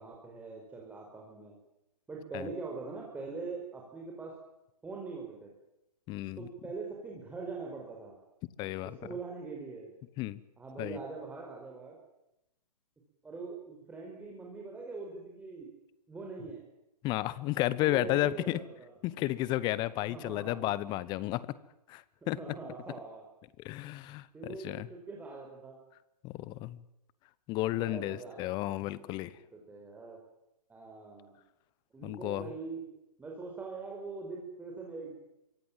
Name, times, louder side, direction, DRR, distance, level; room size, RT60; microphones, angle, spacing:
voice 1, 0.0-1.6 2.1-4.3 4.8-5.5 6.4-8.1 8.8-9.9 10.6-12.0 13.2-15.7 16.1-16.6 17.7-18.9 20.1-20.7 22.2-23.3 24.3-25.8 27.8-28.4 29.5-30.2 30.7-31.4 31.9-32.9 33.2-35.1, right 4 dB, 5° right, -1 dB, 4.9 m, -42 dB
voice 2, 6.1-6.5 8.6-8.9 10.2-10.4 10.8-11.0 17.0-18.6 19.0-21.5 21.9-22.4 23.6-24.3 24.6-24.9 26.2-26.8 27.5-29.3 32.0-32.5, left 16 dB, 20° left, 18 dB, 1.0 m, -32 dB
26.0 x 24.5 x 7.6 m, 0.88 s
figure-of-eight pair, 130°, 21 cm